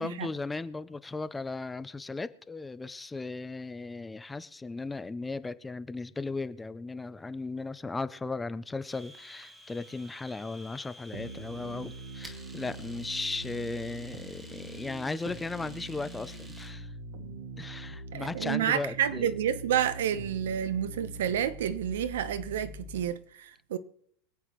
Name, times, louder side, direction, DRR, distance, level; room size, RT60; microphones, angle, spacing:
voice 1, 0.0-16.9 17.6-19.3, left 3 dB, 5° left, 0.4 m, -36 dB
Domestic sounds home sounds, 8.8-16.8, right 1 dB, 10° right, 1.0 m, -52 dB
sound 1, 11.1-23.1, right 1 dB, 60° right, 1.6 m, -43 dB
voice 2, 18.1-23.8, right 9 dB, 85° right, 0.8 m, -30 dB
24.5 x 8.3 x 3.0 m
supercardioid pair, 175°, 0 cm